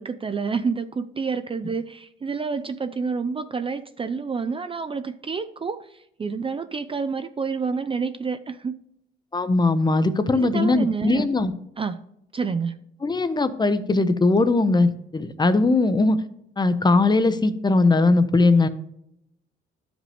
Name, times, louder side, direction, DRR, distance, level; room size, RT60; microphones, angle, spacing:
voice 1, 0.0-8.8 10.3-11.3 11.8-12.0 12.3-12.8, right 5 dB, 25° right, 10 dB, 0.4 m, -28 dB
voice 2, 9.3-11.5 13.0-16.2 16.6-18.7, left 3 dB, 20° left, 12 dB, 0.6 m, -20 dB
11.5 x 5.0 x 3.4 m, 0.76 s
cardioid pair, 90°, 20 cm